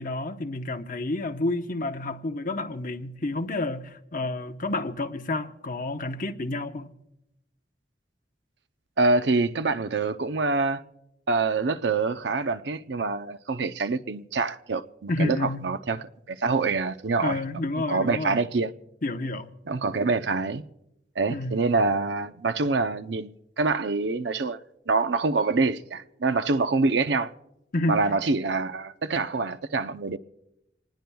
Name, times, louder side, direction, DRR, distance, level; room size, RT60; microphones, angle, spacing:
voice 1, 0.0-6.9 15.1-15.7 17.2-18.4 19.0-19.5 21.3-21.5 27.7-28.0, left 2 dB, 50° left, 1.0 m, -30 dB
voice 2, 9.0-10.8 11.3-17.4 17.9-18.7 19.7-20.6 21.2-24.6 24.9-27.3 27.9-30.2, right 3 dB, 75° right, 0.7 m, -25 dB
27.0 x 19.5 x 2.3 m
head